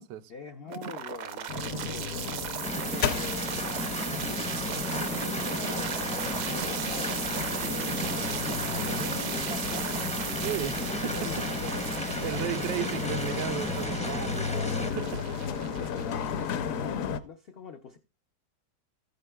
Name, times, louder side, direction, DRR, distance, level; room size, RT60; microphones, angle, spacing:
voice 1, 0.3-5.6 6.5-10.1 10.4-13.1 15.5-18.0, left 5 dB, 85° left, 0.5 m, -45 dB
sound 1, 0.7-16.7, right 9 dB, 65° right, 1.0 m, -36 dB
sound 2, 1.5-17.2, left 7 dB, 65° left, 0.9 m, -34 dB
sound 3, 2.6-14.9, left 1 dB, 10° left, 0.3 m, -35 dB
voice 2, 10.4-11.5 12.2-15.6, right 11 dB, 80° right, 1.3 m, -35 dB
14.5 x 9.2 x 2.2 m
omnidirectional pair, 1.9 m